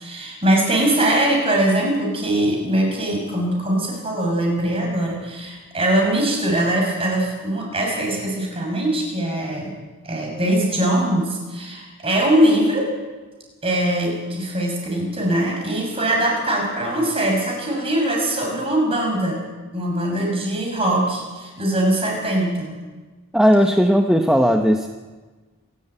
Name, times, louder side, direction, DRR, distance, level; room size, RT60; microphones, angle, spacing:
voice 1, 0.0-9.7 10.0-12.9 13.6-19.4 19.7-22.7, right 1 dB, 25° right, 0 dB, 6.5 m, -21 dB
voice 2, 23.3-24.9, equal, 5° right, 3 dB, 0.9 m, -16 dB
26.5 x 12.5 x 8.9 m, 1.3 s
head